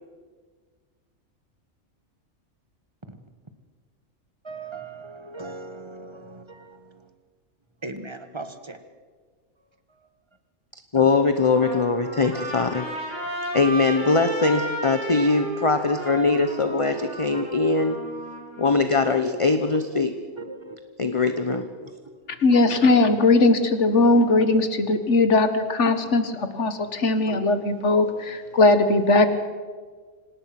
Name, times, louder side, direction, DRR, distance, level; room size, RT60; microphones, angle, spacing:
voice 1, 4.4-7.0 7.8-8.8 10.9-11.1 16.9-17.4 19.9-20.0 20.3-20.8 21.8-22.2 27.3-27.5, right 3 dB, 20° right, 8 dB, 1.5 m, -39 dB
voice 2, 10.9-12.9 13.5-18.0 18.6-20.1 21.0-21.7, left 4 dB, 25° left, 8 dB, 1.0 m, -21 dB
Trumpet, 11.3-18.8, equal, 65° right, 7.5 m, -34 dB
voice 3, 22.4-29.3, left 2 dB, 65° left, 9 dB, 1.9 m, -19 dB
26.0 x 18.5 x 6.0 m, 1.6 s
omnidirectional pair, 1.3 m